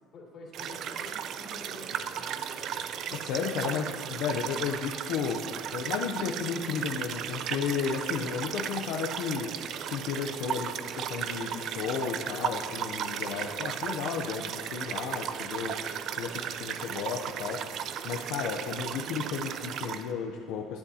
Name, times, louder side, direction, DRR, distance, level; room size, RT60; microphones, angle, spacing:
voice 1, 0.1-2.7, left 2 dB, 45° left, -3 dB, 2.4 m, -48 dB
sound 1, 0.5-20.1, right 9 dB, 55° right, 0.4 m, -35 dB
voice 2, 3.1-9.5 9.8-17.6 18.0-20.8, left 6 dB, 75° left, 0 dB, 0.6 m, -33 dB
13.0 x 8.0 x 2.8 m, 2.2 s
cardioid pair, 120°, 0 cm